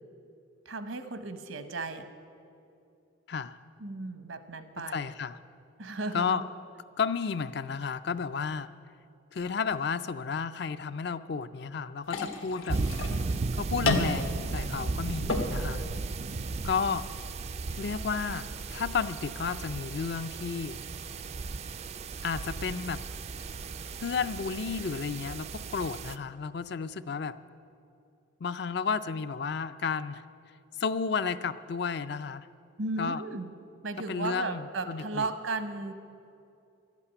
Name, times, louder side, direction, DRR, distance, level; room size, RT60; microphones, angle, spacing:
voice 1, 0.7-2.1 3.8-5.1 5.8-6.4 32.8-33.5 33.8-35.9, right 3 dB, 75° right, 9 dB, 1.0 m, -35 dB
voice 2, 4.9-5.4 6.1-6.4 7.0-8.7 9.3-12.8 13.5-15.8 16.6-17.1 17.8-20.8 22.2-23.0 24.0-27.4 28.4-30.2 30.8-32.4 33.0-33.2 34.1-35.3, left 5 dB, 55° left, 13 dB, 0.4 m, -32 dB
sound 1, 12.0-20.0, left 2 dB, 85° left, 1.5 m, -36 dB
sound 2, 12.7-26.2, right 3 dB, 30° right, 0.3 m, -35 dB
13.0 x 8.3 x 9.8 m, 2.6 s
head